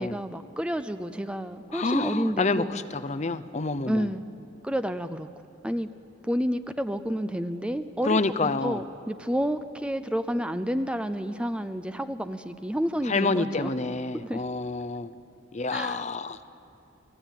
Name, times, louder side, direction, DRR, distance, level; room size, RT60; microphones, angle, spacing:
voice 1, 0.0-2.8 3.9-4.2 4.6-5.3 5.6-5.9 6.2-8.2 8.6-13.7 14.1-14.4 15.7-16.0, equal, 5° right, 10 dB, 0.5 m, -30 dB
voice 2, 1.7-4.1 8.0-8.8 13.0-15.1 15.5-16.4, left 3 dB, 35° left, 13 dB, 0.7 m, -28 dB
29.5 x 18.0 x 9.1 m, 2.8 s
head